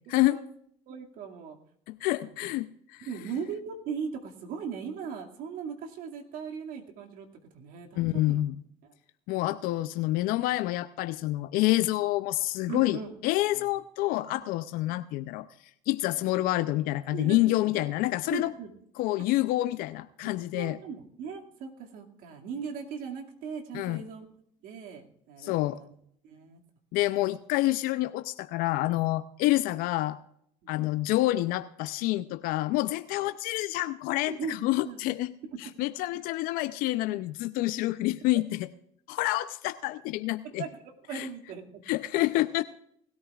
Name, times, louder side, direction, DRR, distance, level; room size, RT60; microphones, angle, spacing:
voice 1, 0.1-0.4 0.9-1.6 3.0-7.3 7.5-8.4 9.6-9.7 11.6-11.7 12.7-13.1 13.5-13.7 14.3-14.4 14.9-15.0 17.1-17.9 18.3-18.7 20.2-24.3 24.6-25.9 26.2-26.6 30.6-30.7 34.3-35.2 35.5-35.6 40.4-40.8 41.1-41.7, right 6 dB, 65° right, 2 dB, 2.3 m, -39 dB
voice 2, 1.9-3.1 7.9-8.6 9.3-15.5 15.9-18.5 19.0-20.8 23.7-24.0 25.4-25.8 26.9-30.2 30.7-35.3 35.6-38.7 39.1-40.6 41.1-41.3 41.9-42.6, left 17 dB, 70° left, 12 dB, 0.6 m, -28 dB
19.5 x 13.5 x 2.4 m, 0.69 s
hypercardioid pair, 75°, 15 cm